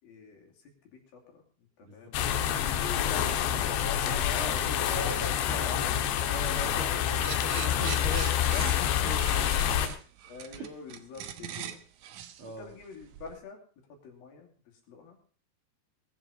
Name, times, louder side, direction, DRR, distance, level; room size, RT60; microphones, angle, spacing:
voice 1, 0.0-1.5 1.8-6.1 8.5-9.8 10.3-11.8 12.4-13.6 13.9-15.2, left 5 dB, 60° left, 1 dB, 4.3 m, -45 dB
voice 2, 1.8-2.1 4.0-4.6 4.9-5.8 6.2-8.7 9.0-10.0 10.6-10.7 12.4-12.7, right 1 dB, 40° right, 1 dB, 2.1 m, -41 dB
sound 1, 2.1-9.9, left 10 dB, 90° left, 3.4 m, -27 dB
sound 2, 7.2-13.4, right 10 dB, 85° right, 1.7 m, -42 dB
20.5 x 7.5 x 5.7 m, 0.41 s
omnidirectional pair, 4.9 m